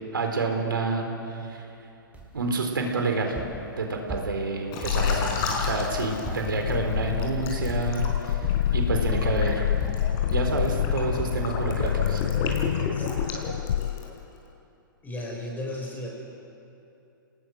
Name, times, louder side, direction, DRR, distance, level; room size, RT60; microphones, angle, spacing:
voice 1, 0.1-1.7 2.3-3.4 3.8-5.3 5.6-9.6 10.3-12.2, right 3 dB, 75° right, 3 dB, 4.0 m, -28 dB
sound 1, 2.1-12.9, right 2 dB, 15° right, 3.9 m, -41 dB
Liquid, 4.7-6.7 7.2-14.2, left 4 dB, 35° left, 5.0 m, -34 dB
sound 2, 4.9-14.3, left 10 dB, 60° left, 0.5 m, -27 dB
voice 2, 15.0-16.1, left 1 dB, 15° left, -1 dB, 5.7 m, -35 dB
30.0 x 19.5 x 6.3 m, 2.8 s
figure-of-eight pair, 120°, 12 cm